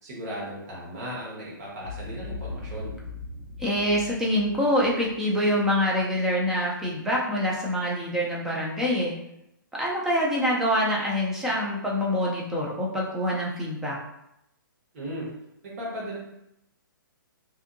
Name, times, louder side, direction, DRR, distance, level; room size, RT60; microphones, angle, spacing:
voice 1, 0.0-2.9 14.9-15.3 15.8-16.2, equal, 45° right, -5 dB, 1.1 m, -36 dB
Boom, 1.8-6.1, left 3 dB, 85° right, 1.1 m, -40 dB
voice 2, 3.6-9.1 9.8-14.0, equal, 5° right, -4 dB, 0.3 m, -25 dB
2.6 x 2.5 x 2.5 m, 0.83 s
hypercardioid pair, 155°, 12 cm